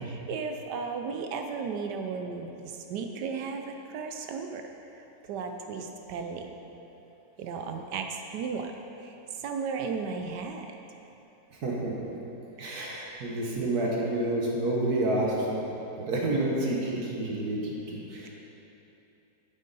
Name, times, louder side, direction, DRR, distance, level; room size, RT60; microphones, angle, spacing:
voice 1, 0.0-4.6 4.9-6.5 7.4-8.7 9.0-10.7, right 5 dB, 75° right, 5 dB, 1.1 m, -35 dB
voice 2, 11.6-11.9 12.6-15.6 16.0-18.3, right 1 dB, 55° right, -3 dB, 1.6 m, -29 dB
9.0 x 7.5 x 4.0 m, 3.0 s
omnidirectional pair, 2.0 m